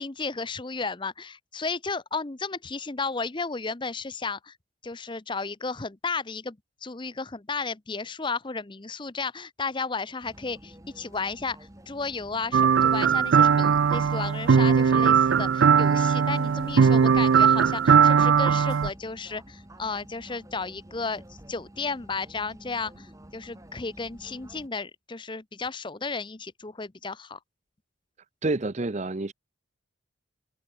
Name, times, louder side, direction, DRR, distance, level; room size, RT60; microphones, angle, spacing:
voice 1, 0.0-4.5 4.8-21.2 21.5-27.4, left 4 dB, 25° left, 0.7 m, -33 dB
sound 1, 10.2-24.7, right 1 dB, 15° right, 1.5 m, -50 dB
sound 2, 12.5-18.9, right 6 dB, 70° right, 0.4 m, -19 dB
voice 2, 28.4-29.3, right 2 dB, 35° right, 0.7 m, -28 dB
open air
head